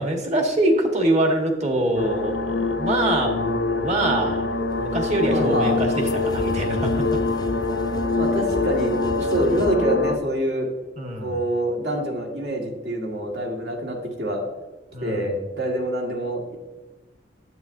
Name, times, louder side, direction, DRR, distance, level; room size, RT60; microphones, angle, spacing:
voice 1, 0.0-4.5 4.8-7.2 10.9-11.4 14.9-15.4, right 1 dB, 40° right, 2 dB, 1.4 m, -24 dB
sound 1, 2.0-10.2, left 3 dB, 80° left, 0.6 m, -25 dB
sound 2, 4.6-9.8, left 2 dB, 25° left, 0.4 m, -36 dB
voice 2, 5.3-5.8 8.2-10.7 11.2-14.4 15.0-16.6, right 1 dB, 65° right, 0 dB, 1.8 m, -26 dB
9.3 x 8.3 x 2.7 m, 1.2 s
head